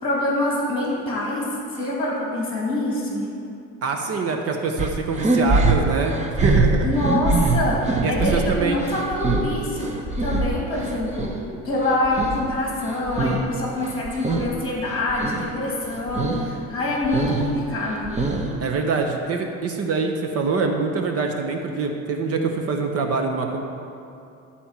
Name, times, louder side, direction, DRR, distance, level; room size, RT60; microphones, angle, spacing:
voice 1, 0.0-3.3 6.8-11.3 11.6-18.1, left 1 dB, 15° left, -3 dB, 2.3 m, -25 dB
voice 2, 3.8-6.9 8.0-8.8 18.6-23.6, right 4 dB, 50° right, 3 dB, 1.0 m, -24 dB
sound 1, 4.8-11.4 11.7-13.5 13.8-14.5 14.9-15.5 15.8-16.5 16.8-18.7, right 2 dB, 25° right, 0.9 m, -24 dB
12.0 x 4.3 x 7.4 m, 2.7 s
cardioid pair, 125°, 30 cm